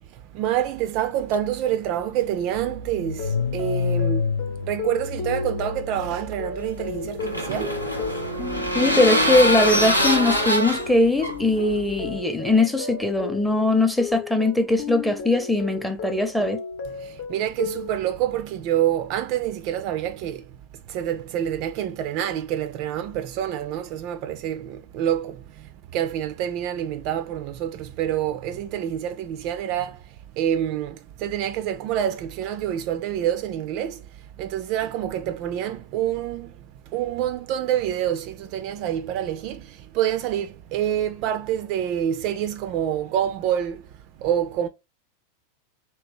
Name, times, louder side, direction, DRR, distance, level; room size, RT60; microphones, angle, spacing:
voice 1, 0.0-8.5 16.9-44.7, right 10 dB, 40° right, 0.3 m, -27 dB
Car / Engine starting, 1.3-1.4 1.7-7.0, left 5 dB, 70° left, 0.4 m, -29 dB
sound 1, 3.1-17.9, left 4 dB, 50° left, 0.8 m, -34 dB
sound 2, 6.7-12.2, equal, 85° left, 0.8 m, -24 dB
voice 2, 8.7-16.6, left 2 dB, ahead, 0.6 m, -21 dB
3.0 x 2.9 x 2.9 m
figure-of-eight pair, 90°, 0 cm